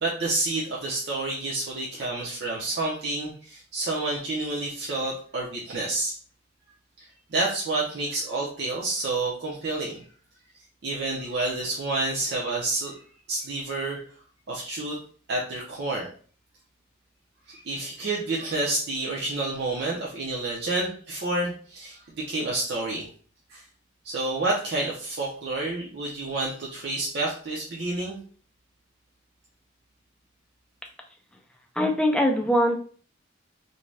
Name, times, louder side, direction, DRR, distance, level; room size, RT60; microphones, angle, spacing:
voice 1, 0.0-6.2 7.0-10.0 10.8-12.9 13.3-14.0 14.5-15.0 15.3-16.1 17.5-23.1 23.5-23.6 24.0-28.2, right 2 dB, 55° right, -4 dB, 0.6 m, -29 dB
voice 2, 31.8-32.8, equal, 5° left, 2 dB, 0.4 m, -22 dB
2.6 x 2.2 x 3.1 m, 0.43 s
head